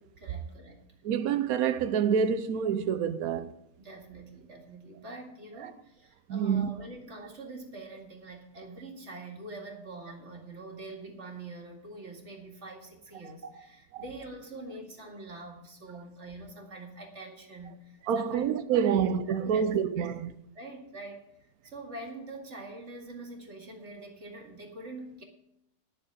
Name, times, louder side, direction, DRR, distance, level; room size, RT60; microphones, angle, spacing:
voice 1, 0.2-0.8 3.8-18.5 19.0-19.1 19.4-19.7 20.0-20.1 20.5-25.2, right 2 dB, 35° right, 2.3 m, -45 dB
voice 2, 1.0-3.5 5.6-5.7 6.3-6.7 14.0-14.1 18.1-20.3, right 7 dB, 85° right, 0.8 m, -27 dB
11.0 x 6.7 x 9.0 m
omnidirectional pair, 2.3 m